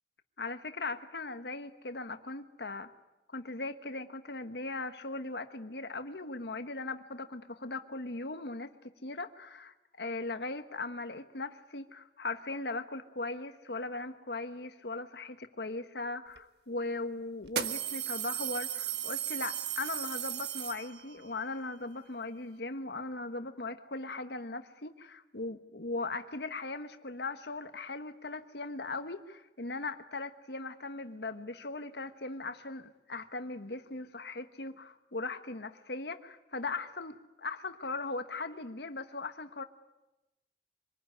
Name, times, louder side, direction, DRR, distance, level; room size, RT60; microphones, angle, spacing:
voice 1, 0.4-2.9 3.3-8.7 9.0-39.6, left 3 dB, 75° left, 9 dB, 1.3 m, -39 dB
sound 1, 16.4-16.5 17.4-21.2, right 10 dB, 70° right, 1.4 m, -36 dB
25.5 x 20.5 x 9.9 m, 0.99 s
head